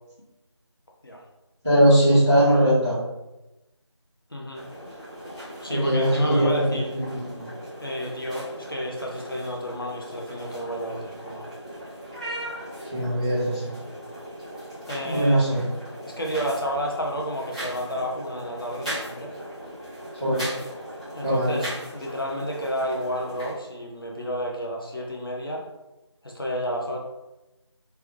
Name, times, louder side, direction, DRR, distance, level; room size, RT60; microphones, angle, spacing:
voice 1, 1.6-3.0 5.7-7.5 12.9-13.7 15.0-15.6 20.2-20.5 21.2-21.6, equal, 5° left, -21 dB, 1.5 m, -21 dB
voice 2, 4.3-4.6 5.6-6.9 7.8-11.4 14.9-15.4 16.0-19.3 21.1-25.7 26.2-27.0, equal, 50° left, -2 dB, 0.9 m, -31 dB
sound 1, 4.5-23.5, equal, 15° right, 1.1 m, -38 dB
3.4 x 3.4 x 3.4 m, 1.0 s
figure-of-eight pair, 175°, 15 cm